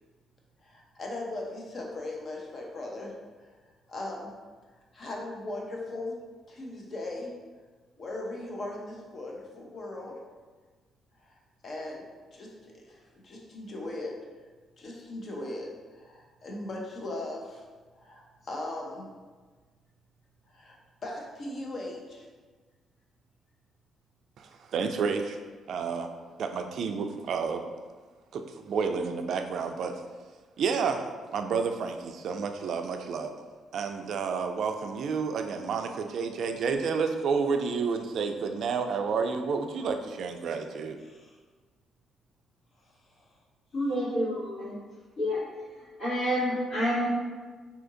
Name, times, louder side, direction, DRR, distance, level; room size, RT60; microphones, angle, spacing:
voice 1, 0.6-3.1 3.4-3.5 3.9-4.3 4.7-6.1 6.5-7.3 8.0-10.2 11.2-11.4 11.6-12.1 12.3-14.2 14.8-17.7 18.0-19.1 20.5-20.8 21.0-22.3 41.0-41.4 43.1-43.2, left 2 dB, 50° left, -1 dB, 0.7 m, -38 dB
voice 2, 24.4-25.4 25.7-26.1 26.4-27.7 28.3-30.0 30.6-33.3 33.7-41.0, right 5 dB, 65° right, 6 dB, 0.3 m, -30 dB
voice 3, 43.7-44.7 45.2-45.4 46.0-47.1, equal, 75° left, -13 dB, 1.4 m, -28 dB
2.8 x 2.5 x 3.7 m, 1.4 s
cardioid pair, 90°, 0 cm